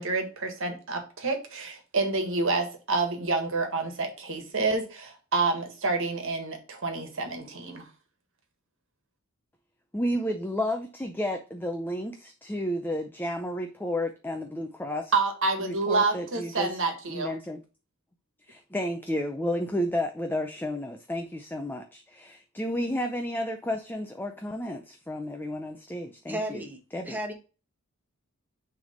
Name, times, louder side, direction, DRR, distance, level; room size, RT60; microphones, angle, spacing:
voice 1, 0.0-7.9 15.1-17.3, right 3 dB, 65° right, 5 dB, 1.6 m, -28 dB
voice 2, 9.9-15.1 15.6-16.7 17.1-17.6 18.5-26.6 26.9-27.2, left 1 dB, 10° left, 5 dB, 0.5 m, -32 dB
voice 3, 26.3-27.3, equal, 10° right, 3 dB, 1.2 m, -34 dB
6.6 x 3.5 x 5.0 m, 0.34 s
head